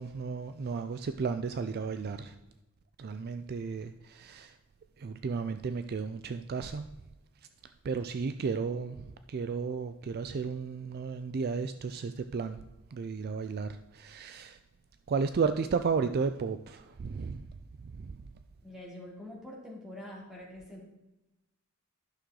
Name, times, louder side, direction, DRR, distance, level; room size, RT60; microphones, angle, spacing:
voice 1, 0.0-2.3 3.0-4.5 5.0-6.9 7.8-12.6 12.9-14.6 15.1-17.5 17.9-18.2, right 5 dB, 45° right, 0.4 m, -33 dB
voice 2, 18.6-20.9, left 1 dB, 5° right, 2.6 m, -45 dB
11.5 x 6.3 x 3.8 m
head